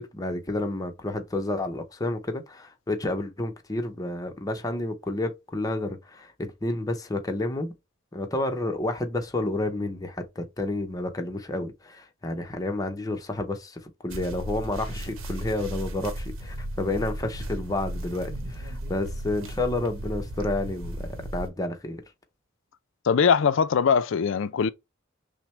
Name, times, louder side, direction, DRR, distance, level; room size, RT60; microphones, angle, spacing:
voice 1, 0.0-7.7 8.1-22.0, left 2 dB, 20° left, 0.7 m, -30 dB
sound 1, 14.1-21.5, right 1 dB, 80° right, 0.9 m, -35 dB
voice 2, 23.0-24.7, left 6 dB, 65° left, 0.4 m, -21 dB
5.9 x 2.1 x 3.1 m
head